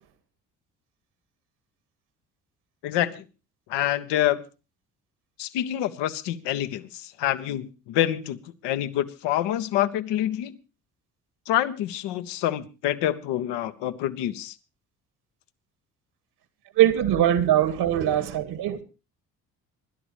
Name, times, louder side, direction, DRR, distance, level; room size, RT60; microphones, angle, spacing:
voice 1, 2.8-3.2 3.7-4.4 5.4-10.6 11.5-14.5, left 12 dB, 65° left, 1.3 m, -27 dB
voice 2, 16.8-18.8, right 11 dB, 60° right, 2.1 m, -21 dB
26.0 x 12.0 x 3.1 m
hypercardioid pair, 50°, 45 cm